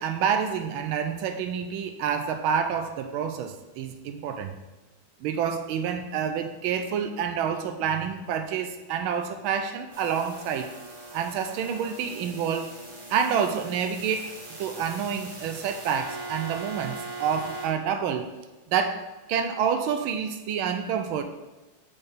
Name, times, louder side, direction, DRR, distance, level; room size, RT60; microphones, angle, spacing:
voice 1, 0.0-4.6 5.2-10.7 11.1-12.7 13.1-18.3 18.7-21.2, right 7 dB, 85° right, 8 dB, 1.4 m, -28 dB
sound 1, 9.9-17.7, right 2 dB, 25° right, 0.7 m, -41 dB
6.8 x 4.4 x 3.5 m, 1.1 s
omnidirectional pair, 2.2 m